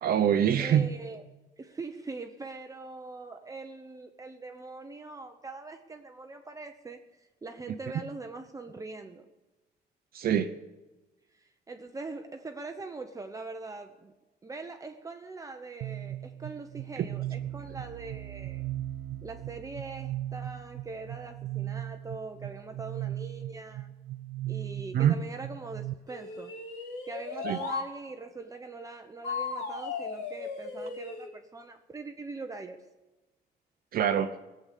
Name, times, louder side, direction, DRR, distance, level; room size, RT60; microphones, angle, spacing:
voice 1, 0.0-0.9 10.1-10.5 17.0-17.1 24.9-25.1 27.4-27.6 33.9-34.3, right 9 dB, 60° right, 0.8 m, -24 dB
voice 2, 0.6-1.2 1.6-9.3 11.3-14.1 14.4-18.7 19.2-23.9 24.5-26.5 27.0-32.8, right 3 dB, 20° right, 0.9 m, -42 dB
sound 1, 15.8-25.9, right 13 dB, 90° right, 0.5 m, -38 dB
sound 2, 26.1-27.9 29.2-31.3, left 4 dB, 80° left, 3.4 m, -36 dB
18.5 x 7.9 x 8.4 m
cardioid pair, 125°, 18 cm